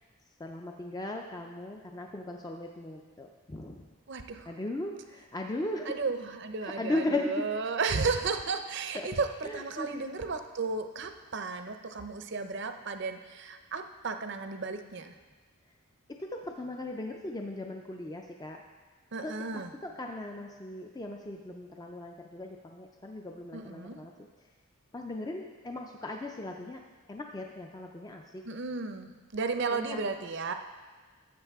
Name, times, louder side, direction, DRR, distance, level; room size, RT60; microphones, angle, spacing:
voice 1, 0.4-3.8 4.5-6.0 6.6-7.4 8.9-9.1 9.4-10.2 16.2-18.6 19.2-24.1 24.9-26.8 27.1-28.4 29.7-30.1, left 2 dB, 15° left, 2 dB, 0.4 m, -37 dB
voice 2, 4.1-4.5 5.9-15.1 19.1-19.7 23.5-24.0 28.4-30.5, right 4 dB, 50° right, 7 dB, 0.6 m, -34 dB
13.0 x 7.8 x 3.5 m, 1.4 s
head